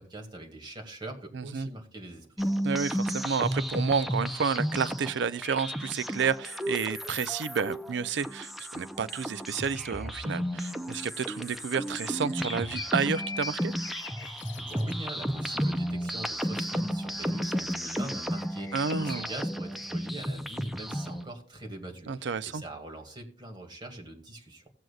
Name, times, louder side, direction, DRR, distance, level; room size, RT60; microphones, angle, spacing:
voice 1, 0.0-2.5 14.2-24.6, right 1 dB, 25° right, 2.1 m, -43 dB
voice 2, 1.3-1.7 2.6-13.7 18.7-19.3 22.1-22.6, right 6 dB, 70° right, 0.4 m, -30 dB
sound 1, 2.4-21.2, equal, ahead, 0.6 m, -33 dB
sound 2, 12.2-15.4 18.3-19.3, left 5 dB, 70° left, 0.9 m, -43 dB
16.5 x 7.7 x 2.4 m
head